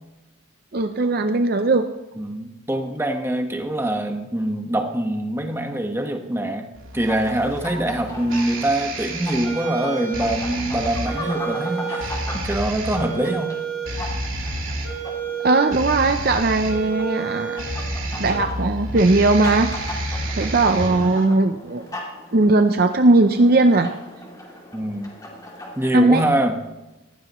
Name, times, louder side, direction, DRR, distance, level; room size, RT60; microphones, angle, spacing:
voice 1, 0.7-1.8 15.4-17.7 18.2-19.7 20.4-21.8 22.3-23.9 25.9-26.2, right 2 dB, 45° right, 7 dB, 0.6 m, -18 dB
voice 2, 2.2-6.7 6.9-13.6 24.7-25.1 25.8-26.6, right 1 dB, 10° right, 4 dB, 1.3 m, -24 dB
sound 1, 6.7-21.2, right 3 dB, 70° right, 3.3 m, -29 dB
sound 2, 6.9-25.9, left 1 dB, 15° left, 2.7 m, -38 dB
19.0 x 15.5 x 3.1 m, 1.0 s
head